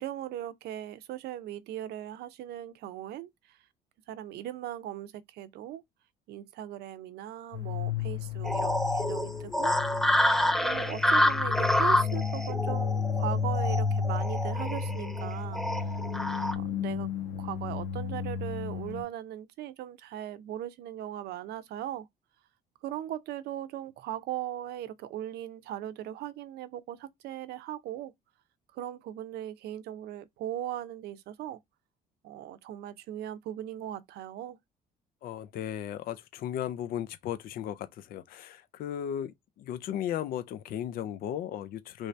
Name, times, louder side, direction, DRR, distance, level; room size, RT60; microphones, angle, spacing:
voice 1, 0.0-3.6 4.1-5.8 6.3-9.8 10.6-15.9 16.3-17.1 17.4-22.1 22.8-28.1 28.7-31.6 32.2-34.6, right 12 dB, 75° right, 0.5 m, -39 dB
sound 1, 7.5-19.0, left 6 dB, 85° left, 1.0 m, -33 dB
sound 2, 8.4-16.5, left 1 dB, ahead, 0.4 m, -28 dB
voice 2, 35.2-42.1, left 10 dB, 60° left, 0.4 m, -36 dB
3.2 x 2.7 x 3.2 m
cardioid pair, 110°, 17 cm